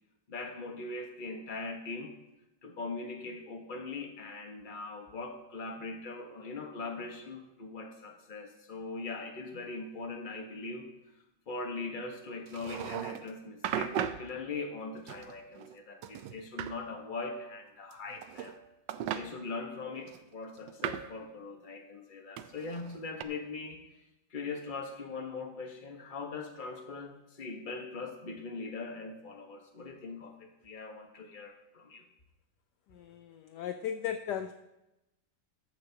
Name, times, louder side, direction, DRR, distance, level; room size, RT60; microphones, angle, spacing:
voice 1, 0.3-2.1 2.6-10.9 11.5-18.6 19.1-23.8 24.3-32.0, left 3 dB, 30° left, 3 dB, 1.1 m, -41 dB
sound 1, 12.5-13.3 13.6-14.3 15.1-15.8 16.0-16.8 17.9-18.6 18.9-19.2 20.1-21.1 22.4-23.2, right 9 dB, 75° right, 1.2 m, -37 dB
voice 2, 32.9-34.5, left 9 dB, 75° left, 9 dB, 1.0 m, -36 dB
14.0 x 11.5 x 2.8 m, 0.96 s
omnidirectional pair, 2.2 m